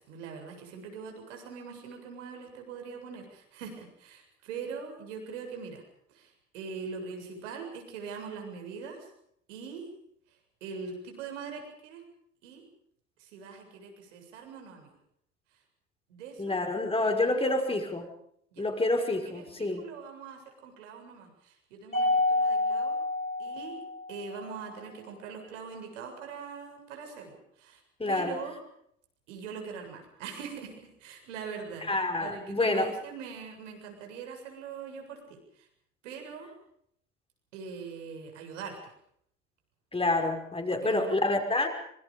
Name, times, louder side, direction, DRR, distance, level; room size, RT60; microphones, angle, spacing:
voice 1, 0.0-5.8 6.1-9.1 9.5-9.8 10.6-12.0 12.4-12.6 13.2-14.9 16.1-17.8 18.5-18.6 19.0-23.0 23.4-23.7 24.1-27.8 28.1-28.6 29.3-31.9 32.2-35.4 36.0-36.5 37.5-38.8 40.7-41.1, right 5 dB, 70° right, 3 dB, 7.5 m, -42 dB
voice 2, 16.4-18.1 18.6-19.8 28.0-28.4 31.9-32.9 39.9-41.7, left 2 dB, 15° left, 4 dB, 5.5 m, -28 dB
Mallet percussion, 21.9-24.4, left 2 dB, 90° left, 7.0 m, -28 dB
26.0 x 25.0 x 5.3 m, 0.70 s
figure-of-eight pair, 65°, 39 cm